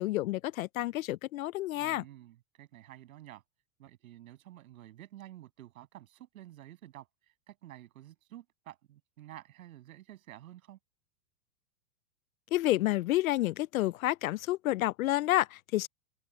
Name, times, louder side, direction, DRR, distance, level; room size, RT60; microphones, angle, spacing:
voice 1, 0.0-2.0 12.5-15.9, left 16 dB, 65° left, 0.5 m, -29 dB
voice 2, 1.7-3.4 3.8-10.8, right 14 dB, 60° right, 7.9 m, -51 dB
supercardioid pair, 175°, 47 cm